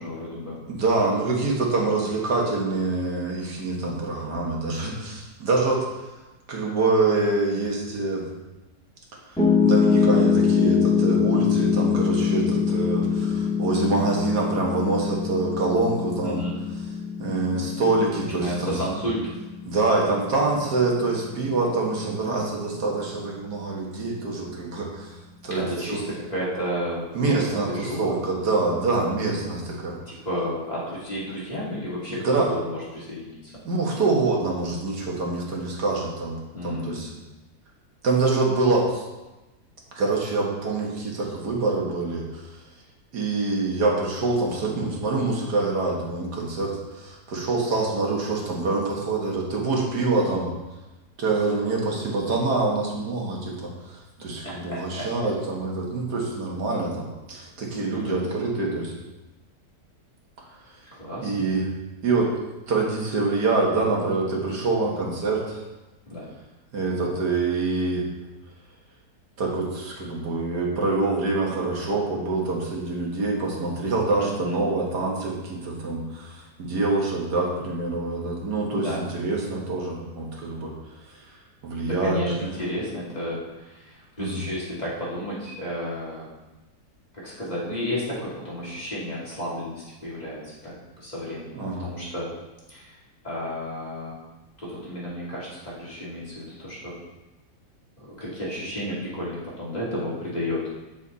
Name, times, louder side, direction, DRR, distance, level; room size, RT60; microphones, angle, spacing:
voice 1, 0.0-0.6 16.2-16.6 18.1-19.4 22.7-23.0 25.5-28.2 30.1-33.5 36.5-37.2 54.4-55.1 57.9-58.2 60.9-61.3 66.1-66.3 74.2-74.7 78.7-79.0 81.8-86.3 87.1-92.3 92.7-93.0 93.2-94.2 94.6-97.0 98.0-100.7, equal, 25° left, -8 dB, 2.9 m, -32 dB
voice 2, 0.7-5.9 6.5-8.3 9.3-16.4 17.2-18.8 19.7-25.1 25.4-26.0 27.2-30.0 32.1-32.5 33.7-37.1 38.0-39.0 39.9-42.5 43.1-50.5 51.2-58.9 60.7-60.8 61.2-61.6 62.0-62.3 62.7-65.6 66.7-68.1 69.4-80.7 81.1-81.3 81.6-82.2 84.2-84.4 91.6-91.9, right 3 dB, 85° right, -2 dB, 2.2 m, -25 dB
Piano, 9.4-21.5, left 6 dB, 5° left, 2.2 m, -24 dB
8.3 x 7.3 x 4.1 m, 1.1 s
omnidirectional pair, 1.7 m